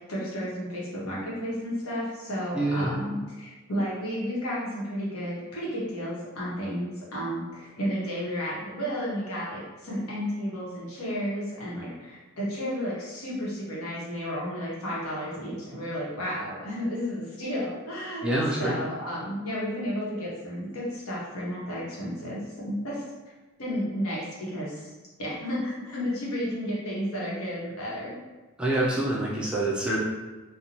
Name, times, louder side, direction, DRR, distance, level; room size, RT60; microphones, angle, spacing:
voice 1, 0.1-23.0 23.6-24.9 25.2-28.2, equal, 80° left, -6 dB, 0.9 m, -32 dB
voice 2, 2.5-2.9 18.2-18.8 28.6-30.0, right 1 dB, 5° right, -6 dB, 0.3 m, -26 dB
2.6 x 2.0 x 2.9 m, 1.2 s
head